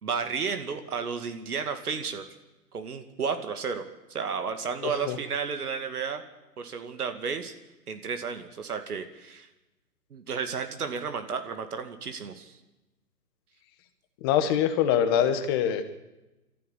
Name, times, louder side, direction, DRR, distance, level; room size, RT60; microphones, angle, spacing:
voice 1, 0.0-2.2 2.7-3.8 4.1-6.2 6.6-7.5 7.9-9.5 10.1-12.6, right 6 dB, 65° right, 7 dB, 2.5 m, -32 dB
voice 2, 4.8-5.2 14.2-15.9, left 9 dB, 15° left, 9 dB, 1.0 m, -24 dB
23.0 x 14.5 x 8.4 m, 1.0 s
hypercardioid pair, 160°, 48 cm